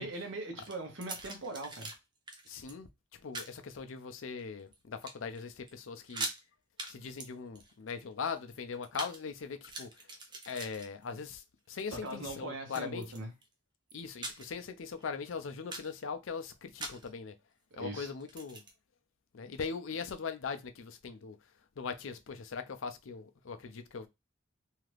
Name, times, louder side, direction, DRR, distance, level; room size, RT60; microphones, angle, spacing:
voice 1, 0.0-1.9 11.9-13.3 17.8-18.1, right 2 dB, 70° right, 1.0 m, -40 dB
sound 1, 0.6-2.0 2.3-2.7 3.3-3.6 4.2-4.7 5.0-5.4 5.7-5.8 6.0-6.4 6.8-6.9 7.2-9.2 9.5-11.3 11.7-12.1 12.7-13.5 13.9-14.6 15.0-15.1 15.5-16.0 16.8-17.1 18.2-18.7, right 2 dB, 20° right, 0.5 m, -42 dB
voice 2, 2.5-2.9 3.2-6.3 6.9-9.9 10.5-13.0 13.9-17.3 17.8-18.6 19.3-21.4 21.8-24.1, left 5 dB, 80° left, 0.5 m, -40 dB
2.8 x 2.4 x 3.2 m
head